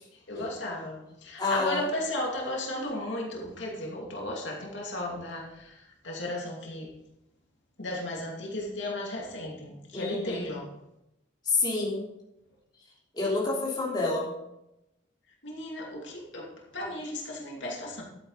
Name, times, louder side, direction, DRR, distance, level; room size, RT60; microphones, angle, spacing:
voice 1, 0.3-5.7 6.0-6.9 7.8-10.7 15.4-16.5 16.7-18.0, left 1 dB, 75° left, -1 dB, 2.5 m, -35 dB
voice 2, 1.4-1.9 9.9-10.5 11.4-12.0 13.1-14.3, left 3 dB, 20° left, -5 dB, 3.2 m, -28 dB
12.0 x 8.9 x 4.0 m, 0.87 s
head